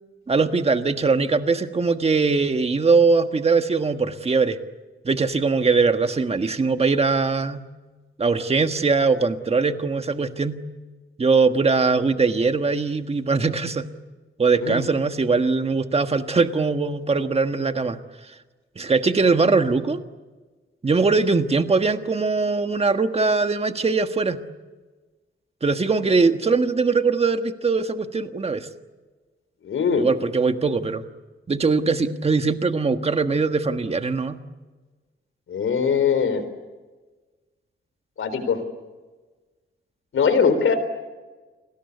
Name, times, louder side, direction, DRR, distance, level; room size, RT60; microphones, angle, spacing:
voice 1, 0.3-4.6 5.0-7.6 8.2-10.6 11.2-13.8 14.4-18.0 18.7-20.0 20.8-24.4 25.6-28.7 29.9-31.0 31.5-34.4, right 4 dB, 30° right, 8 dB, 1.5 m, -21 dB
voice 2, 29.6-30.0 35.5-36.4 38.2-38.6 40.1-40.8, left 6 dB, 75° left, 10 dB, 3.9 m, -21 dB
29.5 x 20.5 x 8.3 m, 1.3 s
wide cardioid pair, 125°, 21 cm